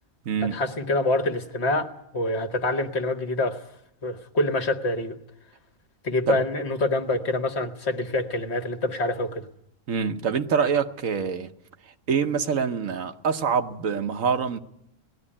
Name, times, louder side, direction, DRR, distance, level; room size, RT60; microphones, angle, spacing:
voice 1, 0.4-3.6 4.0-5.2 6.0-9.5, left 2 dB, 55° left, 1.6 m, -26 dB
voice 2, 9.9-11.5 12.1-14.6, right 6 dB, 75° right, 1.4 m, -25 dB
19.0 x 14.0 x 9.9 m
omnidirectional pair, 1.4 m